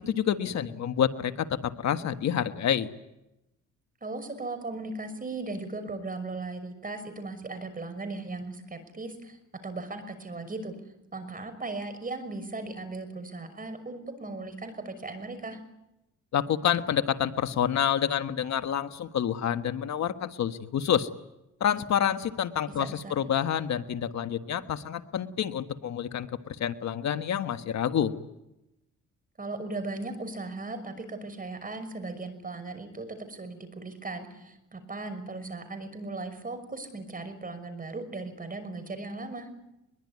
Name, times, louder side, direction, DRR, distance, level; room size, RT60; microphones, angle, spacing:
voice 1, 0.1-2.9 16.3-21.1 21.6-28.1, left 9 dB, 65° left, 10 dB, 1.4 m, -28 dB
voice 2, 4.0-9.4 9.6-10.7 11.1-15.6 22.8-23.1 29.4-39.5, right 3 dB, 30° right, 9 dB, 5.9 m, -37 dB
23.0 x 22.0 x 9.7 m, 0.90 s
cardioid pair, 90°, 30 cm